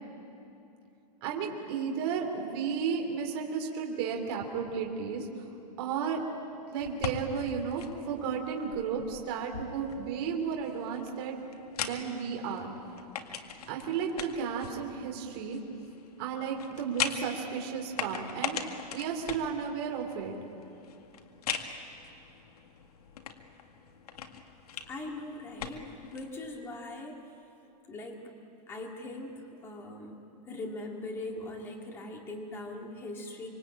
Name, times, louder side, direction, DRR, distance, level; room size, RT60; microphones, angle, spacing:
voice 1, 1.2-5.3 5.8-6.2 6.7-11.3 11.8-12.7 13.7-15.6 16.2-18.6 18.9-20.3, right 6 dB, 35° right, 0 dB, 3.1 m, -33 dB
sound 1, 6.8-26.3, left 7 dB, 65° left, 2.0 m, -41 dB
voice 2, 24.9-27.2 27.9-28.2 28.7-30.2 30.5-33.5, left 2 dB, 10° left, 1 dB, 2.1 m, -40 dB
26.0 x 24.0 x 8.8 m, 2.8 s
supercardioid pair, 180°, 21 cm